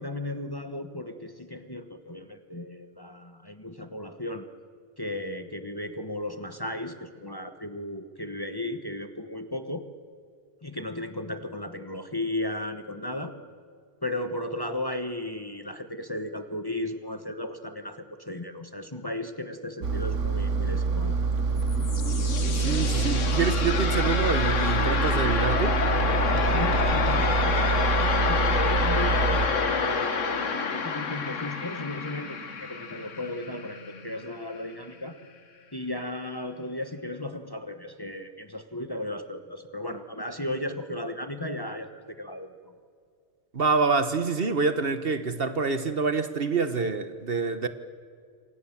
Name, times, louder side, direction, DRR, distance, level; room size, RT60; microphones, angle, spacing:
voice 1, 0.0-4.5 5.0-9.8 10.6-13.3 14.0-21.2 26.3-35.2 35.7-42.8, left 1 dB, 20° left, 1.2 m, -35 dB
Engine, 19.8-29.5, right 4 dB, 80° right, 1.5 m, -26 dB
sound 1, 21.4-34.2, left 5 dB, 85° left, 1.7 m, -28 dB
voice 2, 22.5-25.8 43.5-47.7, right 4 dB, 50° right, 1.3 m, -26 dB
27.5 x 26.0 x 7.4 m
omnidirectional pair, 1.2 m